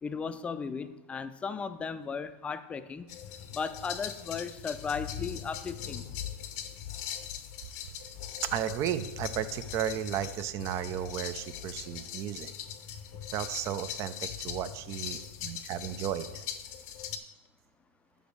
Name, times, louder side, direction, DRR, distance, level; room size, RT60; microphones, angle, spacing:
voice 1, 0.0-3.1 3.5-6.0, left 5 dB, 15° left, 11 dB, 0.5 m, -36 dB
sound 1, 3.1-17.2, left 9 dB, 55° left, 0.7 m, -41 dB
voice 2, 8.5-12.5 13.3-16.3, right 10 dB, 45° right, 13 dB, 0.5 m, -34 dB
6.1 x 5.0 x 6.6 m, 1.0 s
hypercardioid pair, 120°, 7 cm